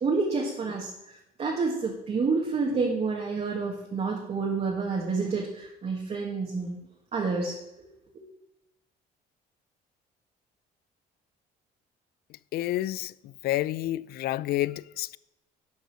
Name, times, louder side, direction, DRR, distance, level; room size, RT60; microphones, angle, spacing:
voice 1, 0.0-6.8 7.1-7.9 8.1-8.2, right 4 dB, 40° right, 1.8 m, -29 dB
voice 2, 12.5-13.1 13.4-15.2, left 15 dB, 70° left, 0.4 m, -29 dB
11.5 x 5.4 x 6.4 m
cardioid pair, 110°, 17 cm